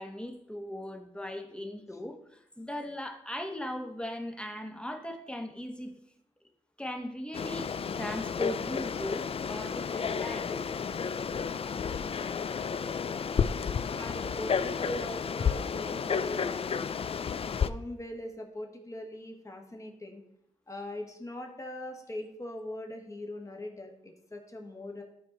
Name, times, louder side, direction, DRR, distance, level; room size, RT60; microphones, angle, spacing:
voice 1, 0.0-5.9 6.8-10.5, left 1 dB, 5° left, 5 dB, 1.1 m, -38 dB
Frog, 7.3-17.7, left 6 dB, 45° left, 0.4 m, -32 dB
voice 2, 13.9-16.9 17.6-20.2 20.7-25.0, left 1 dB, 25° left, 2 dB, 1.5 m, -41 dB
13.0 x 4.7 x 3.9 m, 0.78 s
cardioid pair, 70°, 13 cm